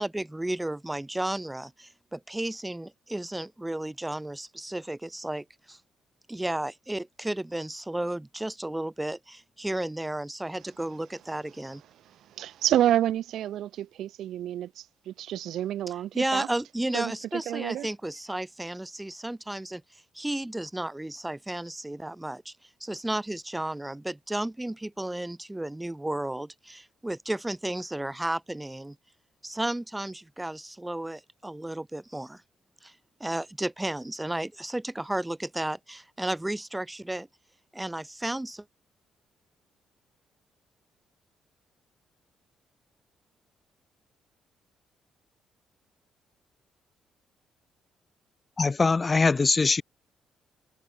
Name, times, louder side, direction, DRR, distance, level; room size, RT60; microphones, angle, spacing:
voice 1, 0.0-5.8 6.3-11.8 16.1-22.5 22.8-29.0 29.4-32.4 32.8-32.9 33.2-37.3 37.7-38.6, right 1 dB, 10° right, 1.4 m, -33 dB
voice 2, 12.4-16.5 16.9-17.1 17.5-17.9, right 12 dB, 75° right, 0.9 m, -28 dB
voice 3, 48.6-49.8, left 4 dB, 30° left, 0.6 m, -22 dB
cardioid pair, 90°, 0 cm